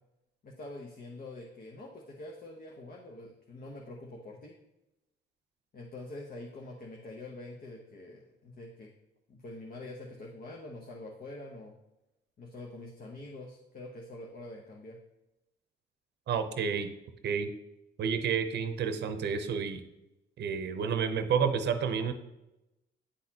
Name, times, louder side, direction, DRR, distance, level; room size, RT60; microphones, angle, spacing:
voice 1, 0.4-4.6 5.7-8.9 9.3-11.7 12.4-15.0, left 2 dB, 45° left, 0 dB, 0.9 m, -45 dB
voice 2, 16.3-16.9 17.2-17.5 18.0-19.8 20.4-22.1, right 6 dB, 60° right, 8 dB, 0.7 m, -30 dB
9.8 x 4.0 x 2.9 m, 0.94 s
cardioid pair, 90°, 20 cm